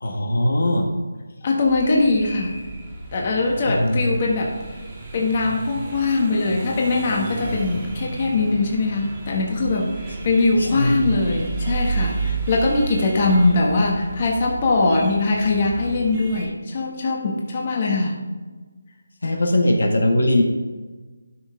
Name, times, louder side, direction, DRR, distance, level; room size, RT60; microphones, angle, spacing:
voice 1, 0.0-0.9 3.7-4.0 10.6-11.2 19.2-20.4, left 1 dB, 75° left, 2 dB, 1.8 m, -20 dB
voice 2, 1.4-2.5 3.1-4.5 5.1-10.0 10.2-18.2, left 3 dB, 35° left, -1 dB, 1.6 m, -21 dB
sound 1, 1.7-16.5, right 3 dB, 25° right, 2.0 m, -32 dB
12.0 x 6.5 x 3.6 m, 1.3 s
figure-of-eight pair, 160°, 0 cm